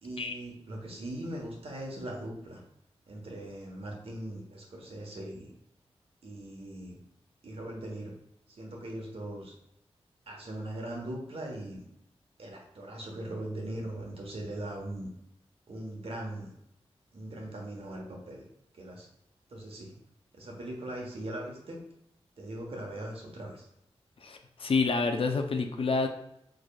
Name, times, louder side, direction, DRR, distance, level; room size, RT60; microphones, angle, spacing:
voice 1, 0.0-2.6 3.1-5.5 6.2-7.0 7.4-8.1 8.5-9.5 10.3-11.8 12.4-15.1 15.7-16.5 17.1-18.4 18.7-19.1 19.5-19.9 20.3-21.8 22.4-23.7, right 1 dB, 65° right, 0 dB, 1.2 m, -40 dB
voice 2, 24.2-26.1, left 4 dB, 60° left, 5 dB, 0.6 m, -28 dB
4.8 x 4.1 x 2.3 m, 0.78 s
cardioid pair, 65°, 11 cm